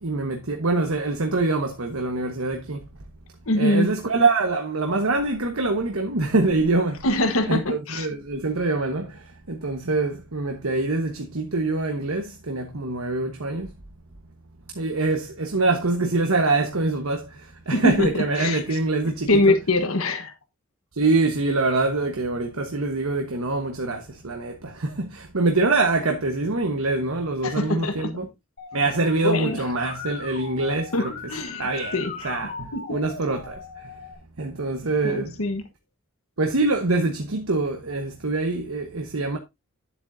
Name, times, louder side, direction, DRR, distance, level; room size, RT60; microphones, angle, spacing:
voice 1, 0.0-2.9 3.6-7.0 7.5-13.7 14.7-19.5 20.9-28.3 28.7-31.3 31.6-32.0 32.2-34.0 34.4-35.4 36.4-39.4, right 3 dB, 85° right, 1.2 m, -25 dB
voice 2, 3.5-3.9 7.0-8.1 17.7-18.8 19.3-20.3 27.4-28.1 29.2-29.6 30.9-31.0 31.3-31.7 31.9-32.3 32.7-32.9 35.0-35.6, left 2 dB, 85° left, 1.3 m, -23 dB
Musical instrument, 28.6-34.1, left 4 dB, 45° left, 2.3 m, -39 dB
10.0 x 7.9 x 2.7 m
head